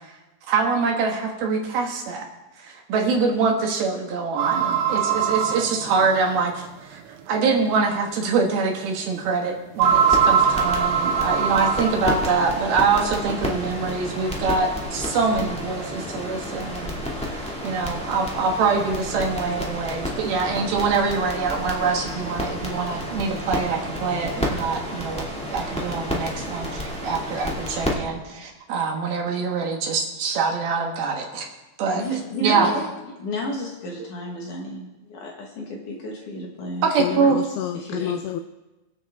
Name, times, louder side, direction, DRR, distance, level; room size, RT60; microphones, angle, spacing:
voice 1, 0.5-2.3 2.6-7.0 7.3-17.0 17.2-31.5 31.8-32.0 32.4-32.7 36.8-37.4, right 4 dB, 65° right, 3.1 m, -24 dB
sound 1, 4.4-6.4 7.1-7.2 7.8-7.9 9.8-12.2, right 7 dB, 90° right, 3.2 m, -21 dB
sound 2, 9.8-27.9, left 1 dB, 10° left, 0.3 m, -31 dB
voice 2, 31.9-36.9 37.7-38.1, right 1 dB, 55° left, 2.6 m, -32 dB
voice 3, 37.0-38.4, left 11 dB, 90° left, 2.2 m, -28 dB
24.0 x 8.1 x 3.6 m
omnidirectional pair, 5.0 m